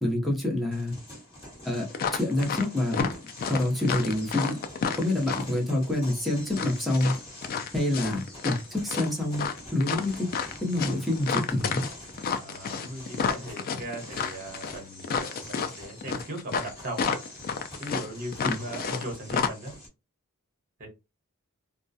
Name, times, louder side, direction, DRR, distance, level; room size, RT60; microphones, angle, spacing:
voice 1, 0.0-1.0 1.6-4.6 5.0-7.1 7.7-9.5 9.7-10.3 10.6-11.9 18.4-18.6, left 1 dB, ahead, 0.7 m, -27 dB
sound 1, 0.7-19.9, left 1 dB, 25° left, 1.3 m, -46 dB
sound 2, 1.9-2.6 2.9-5.6 6.5-8.6 8.9-19.0 19.3-19.5, left 6 dB, 40° left, 0.3 m, -30 dB
voice 2, 12.4-17.1 17.8-19.8 20.8-20.9, right 1 dB, 40° right, 0.9 m, -38 dB
2.3 x 2.1 x 2.6 m
head